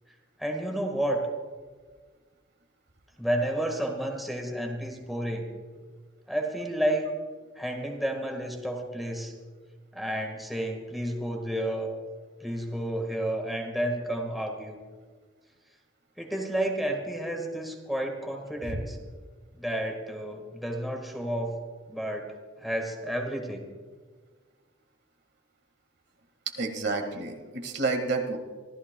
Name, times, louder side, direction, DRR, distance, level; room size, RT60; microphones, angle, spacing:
voice 1, 0.4-1.2 3.2-5.5 6.3-7.1 7.6-9.3 9.9-11.9 12.4-14.8 16.2-19.0 19.5-21.6 21.9-23.6, right 1 dB, ahead, 2 dB, 1.5 m, -31 dB
voice 2, 26.6-28.4, right 3 dB, 60° right, 4 dB, 1.7 m, -30 dB
25.5 x 14.5 x 2.2 m, 1.5 s
head